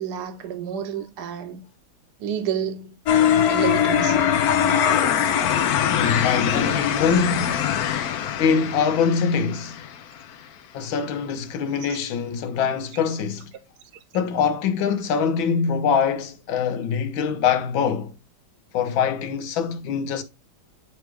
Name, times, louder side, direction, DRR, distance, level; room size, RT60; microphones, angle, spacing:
voice 1, 0.0-1.6 2.2-3.0 3.5-4.4 11.8-12.0, right 8 dB, 60° right, 1.3 m, -30 dB
sound 1, 3.1-10.0, left 9 dB, 65° left, 0.9 m, -22 dB
voice 2, 5.9-7.7 8.4-9.8 10.7-13.5 14.1-18.1 18.7-20.2, left 6 dB, 85° left, 1.6 m, -23 dB
9.4 x 3.2 x 3.3 m
omnidirectional pair, 2.1 m